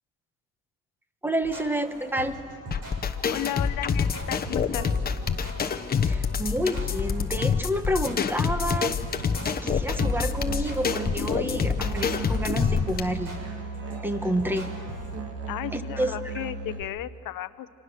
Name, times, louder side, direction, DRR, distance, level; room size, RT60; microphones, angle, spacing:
voice 1, 1.2-2.4 6.0-9.0 9.4-13.4 14.0-14.7 15.7-16.4, right 1 dB, 5° right, 9 dB, 1.0 m, -29 dB
sound 1, 1.4-15.1, right 2 dB, 50° right, 6.8 m, -42 dB
sound 2, 2.7-13.0, left 6 dB, 20° left, 1.0 m, -27 dB
voice 2, 3.3-4.9 15.5-17.7, left 14 dB, 50° left, 13 dB, 0.9 m, -34 dB
Musical instrument, 10.0-16.8, right 4 dB, 30° right, 1.9 m, -36 dB
29.5 x 26.5 x 6.5 m, 2.2 s
cardioid pair, 150°, 44 cm